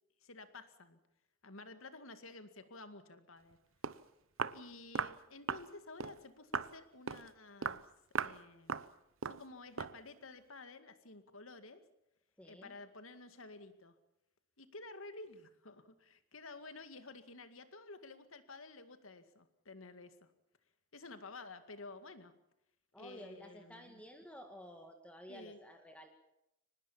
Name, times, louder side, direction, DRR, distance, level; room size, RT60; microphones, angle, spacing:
voice 1, 0.2-1.0 1.4-3.6 4.5-7.8 8.2-8.8 9.2-11.8 12.4-14.0 14.6-20.3 20.9-22.3 23.0-24.0 25.3-25.6, left 3 dB, 85° left, 10 dB, 2.2 m, -52 dB
Walk footsteps, 3.5-3.6 3.8-4.0 4.4-4.6 4.9-5.2 5.5-5.7 6.0-6.2 6.5-6.7 7.1-7.3 7.6-7.8 8.1-8.4 8.7-8.9 9.2-9.4 9.8-10.0, right 6 dB, 75° right, 0.8 m, -38 dB
voice 2, 12.4-12.8 22.9-26.1, equal, 5° left, 4 dB, 1.9 m, -53 dB
24.0 x 20.0 x 7.3 m, 0.83 s
head